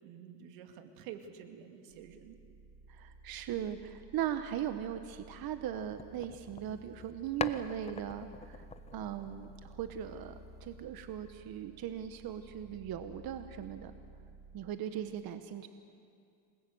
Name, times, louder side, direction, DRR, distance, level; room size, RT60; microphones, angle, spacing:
voice 1, 0.0-2.4 14.9-15.1, right 9 dB, 85° right, 6 dB, 2.5 m, -49 dB
sound 1, 1.9-14.6, right 1 dB, 10° right, 5.0 m, -55 dB
voice 2, 2.9-8.6 8.9-13.9 14.5-15.7, right 10 dB, 50° right, 9 dB, 1.3 m, -39 dB
sound 2, 5.8-7.1 7.4-10.0, left 5 dB, 15° left, 0.6 m, -43 dB
28.0 x 20.5 x 7.9 m, 2.4 s
cardioid pair, 120°, 47 cm